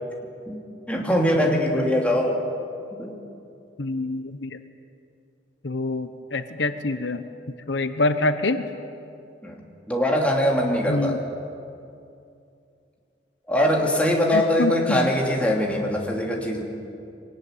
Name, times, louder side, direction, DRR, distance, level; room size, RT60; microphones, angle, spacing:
voice 1, 0.9-2.4 2.9-3.2 9.4-9.6 9.9-11.2 13.5-16.6, equal, 5° left, -1 dB, 2.9 m, -22 dB
voice 2, 3.8-4.6 5.6-7.2 7.7-8.7 10.9-11.2 14.3-15.1, left 2 dB, 80° left, 10 dB, 1.0 m, -26 dB
23.0 x 18.5 x 9.2 m, 2.6 s
head